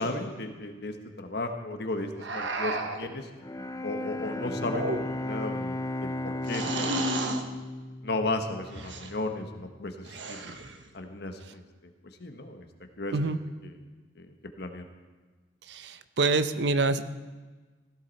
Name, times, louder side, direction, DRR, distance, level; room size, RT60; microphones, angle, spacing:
voice 1, 0.0-3.3 3.8-7.0 8.0-10.4 10.9-11.6 12.2-12.7 13.0-13.1 13.6-13.7 14.2-14.3 14.6-14.8, left 2 dB, 60° left, 5 dB, 1.3 m, -34 dB
sound 1, 2.2-3.1 4.6-5.3 6.5-7.5 8.7-9.1 10.0-10.8, right 2 dB, 85° right, 1.3 m, -32 dB
Bowed string instrument, 3.4-9.4, left 1 dB, 20° left, 0.4 m, -35 dB
voice 2, 15.7-17.1, right 3 dB, 70° right, 12 dB, 0.7 m, -26 dB
16.5 x 15.0 x 4.1 m, 1.3 s
head